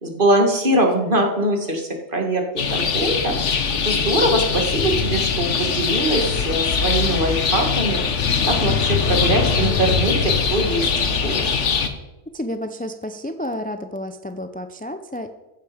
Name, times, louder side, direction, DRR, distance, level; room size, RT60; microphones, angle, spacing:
voice 1, 0.0-2.4 2.7-8.0 8.5-10.9 11.2-11.4, right 1 dB, 45° right, 2 dB, 2.3 m, -22 dB
sound 1, 2.6-11.9, left 5 dB, 80° left, 1.5 m, -21 dB
voice 2, 12.3-15.3, left 1 dB, 10° left, 8 dB, 0.5 m, -30 dB
15.0 x 10.5 x 5.1 m, 1.1 s
omnidirectional pair, 1.2 m